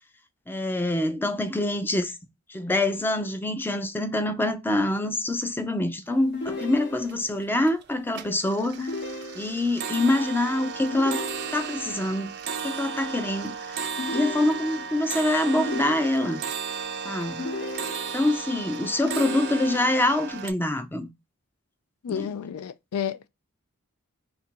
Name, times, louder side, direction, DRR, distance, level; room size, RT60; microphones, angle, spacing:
voice 1, 0.5-2.1 2.5-8.9 9.3-11.2 11.5-12.3 12.6-13.8 14.1-16.4 17.0-17.4 18.1-21.1 22.1-22.3, left 1 dB, 10° left, 0.4 m, -25 dB
sound 1, 6.1-6.2 6.5-7.1 7.5-7.8 8.1-20.5, right 6 dB, 50° right, 0.4 m, -35 dB
sound 2, 6.3-7.4 8.8-9.8 10.9-12.0 14.0-15.0 15.6-16.5 17.4-18.4 19.0-20.1, left 3 dB, 55° left, 0.9 m, -35 dB
voice 2, 22.0-23.3, left 8 dB, 85° left, 0.4 m, -31 dB
3.3 x 2.6 x 4.4 m
head